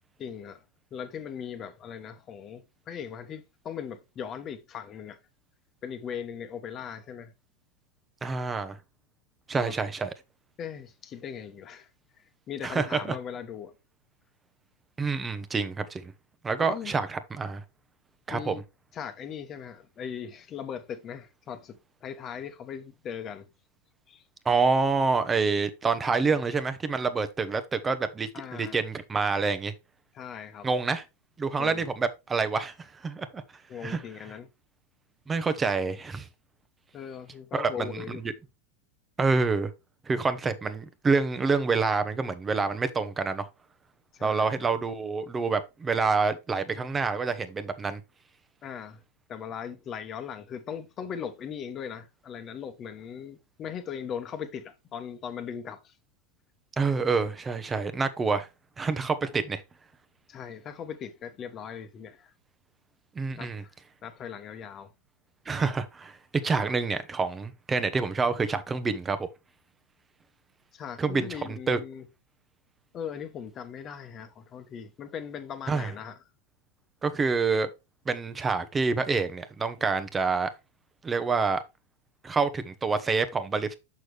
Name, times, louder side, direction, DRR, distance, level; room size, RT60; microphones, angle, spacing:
voice 1, 0.2-0.6 0.9-5.2 5.8-7.3 9.5-9.7 10.6-11.9 12.2-13.7 16.6-16.9 18.3-18.6 18.9-23.5 24.1-24.2 28.3-28.8 30.1-30.7 31.6-31.8 33.7-34.5 36.9-38.2 44.1-44.5 48.6-49.0 49.3-55.9 60.3-62.3 63.4-63.7 64.0-64.9 70.7-72.1 72.9-76.2, left 8 dB, 35° left, 1.2 m, -39 dB
voice 2, 8.2-8.8 9.5-10.1 12.6-13.2 15.0-16.1 16.4-17.6 18.3-18.5 24.4-29.7 30.6-31.0 31.4-33.4 33.8-34.0 35.3-36.3 37.5-38.3 39.2-39.7 40.1-43.5 44.2-48.0 56.8-58.5 58.8-59.6 63.1-63.6 65.5-66.2 66.4-69.3 71.0-71.8 75.7-75.9 77.0-77.7 78.1-80.5 81.0-81.6 82.2-83.8, right 4 dB, 20° right, 1.0 m, -27 dB
6.5 x 6.2 x 3.4 m
hypercardioid pair, 110°, 0 cm